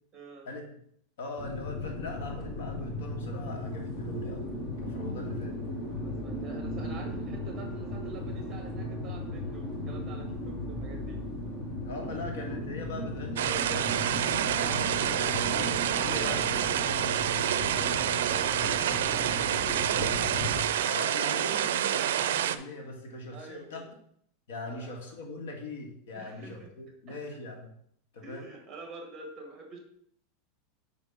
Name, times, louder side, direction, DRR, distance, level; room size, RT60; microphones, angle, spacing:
voice 1, 0.1-0.5 6.0-11.2 16.1-16.6 18.3-19.3 23.3-23.9 24.6-24.9 26.1-26.7 27.1-27.2 28.2-29.8, right 3 dB, 20° right, 3 dB, 1.7 m, -46 dB
voice 2, 1.2-5.5 11.8-13.9 14.2-18.0 20.9-23.9 24.5-27.7 28.1-28.5, left 2 dB, 80° left, 2 dB, 1.8 m, -41 dB
sound 1, 1.4-20.6, left 1 dB, 20° left, 1.3 m, -36 dB
sound 2, 13.4-22.6, right 11 dB, 90° right, 0.4 m, -28 dB
5.1 x 4.9 x 5.5 m, 0.67 s
supercardioid pair, 160°, 0 cm